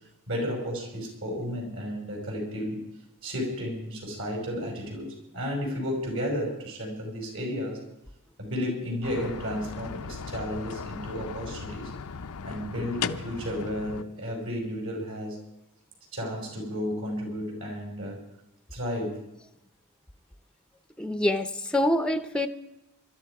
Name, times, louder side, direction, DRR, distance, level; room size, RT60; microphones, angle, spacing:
voice 1, 0.3-2.8 3.2-7.8 8.4-11.9 12.4-15.4 16.1-18.2 18.7-19.2, equal, 65° right, 5.5 m, -33 dB
sound 1, 9.0-14.0, left 6 dB, 80° left, 0.6 m, -37 dB
voice 2, 21.0-22.5, left 1 dB, 5° left, 0.7 m, -25 dB
22.0 x 13.0 x 4.9 m
head